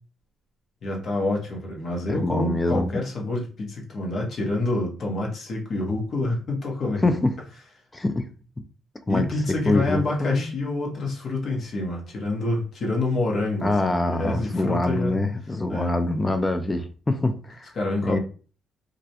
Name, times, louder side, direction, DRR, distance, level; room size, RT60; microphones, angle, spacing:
voice 1, 0.8-7.1 9.1-15.2 15.7-16.0 17.7-18.2, left 2 dB, 55° left, 0.8 m, -27 dB
voice 2, 2.1-2.9 7.0-7.3 7.9-8.3 9.1-9.3 9.7-10.5 13.6-17.7 18.0-18.2, left 2 dB, 20° left, 0.3 m, -24 dB
2.4 x 2.0 x 2.7 m
cardioid pair, 90°, 0 cm